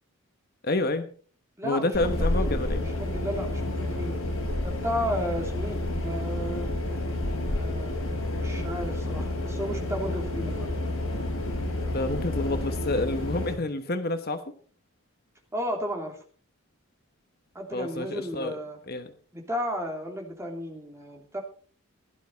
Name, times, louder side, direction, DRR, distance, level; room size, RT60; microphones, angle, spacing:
voice 1, 0.6-1.1 1.6-2.8 11.8-14.4 17.7-18.5 18.9-19.1, left 2 dB, 45° left, 9 dB, 1.1 m, -28 dB
voice 2, 1.6-2.6 2.9-4.2 4.6-6.7 7.5-10.7 15.5-16.2 17.5-18.8 19.3-21.4, equal, 15° right, 2 dB, 2.9 m, -34 dB
sound 1, 1.9-13.5, left 1 dB, 65° left, 7.9 m, -30 dB
16.5 x 12.0 x 4.1 m, 0.42 s
head